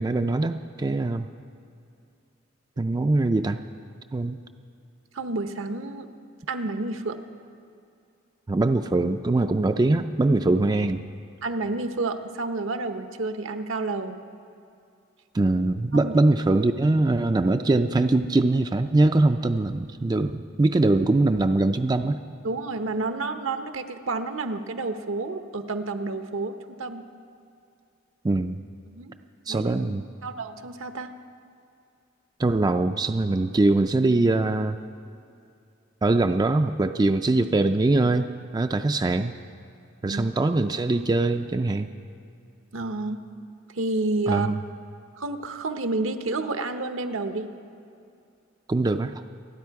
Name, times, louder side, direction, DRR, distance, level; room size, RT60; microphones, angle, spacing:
voice 1, 0.0-1.3 2.8-3.6 4.1-4.4 8.5-11.0 15.3-22.2 28.2-28.6 29.5-30.0 32.4-34.8 36.0-39.3 40.0-41.9 44.3-44.6 48.7-49.1, right 2 dB, 20° right, 8 dB, 0.4 m, -22 dB
voice 2, 5.1-6.1 6.5-7.2 11.4-14.2 15.9-16.1 22.4-26.5 26.8-27.0 28.9-29.1 29.5-29.7 30.2-31.1 40.0-40.3 42.7-43.2 43.7-44.5 45.2-47.5, right 3 dB, 75° right, 8 dB, 0.9 m, -30 dB
27.5 x 9.9 x 4.7 m, 2.5 s
head